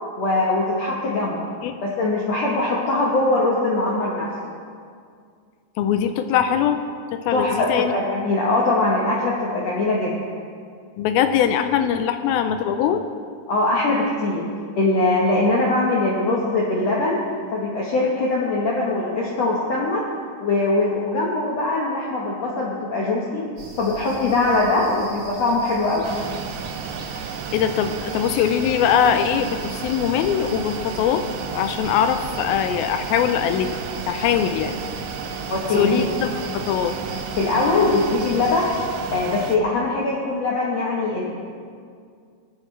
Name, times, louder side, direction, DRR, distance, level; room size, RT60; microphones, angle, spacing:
voice 1, 0.2-1.5 1.8-4.3 7.3-10.1 13.5-14.4 14.8-17.2 17.5-20.0 20.4-23.4 23.8-26.1 35.5-35.9 37.4-38.6 39.1-41.2, left 2 dB, 65° left, -4 dB, 1.6 m, -21 dB
voice 2, 5.8-6.8 7.1-7.9 11.0-13.0 27.5-31.2 31.5-33.7 34.1-34.8 35.7-36.9, left 8 dB, 80° left, 8 dB, 2.2 m, -21 dB
sound 1, 23.6-39.1, right 2 dB, 50° right, 1.6 m, -40 dB
sound 2, 26.0-39.6, right 6 dB, 80° right, 2.1 m, -32 dB
24.0 x 8.4 x 3.3 m, 2.2 s
omnidirectional pair, 4.7 m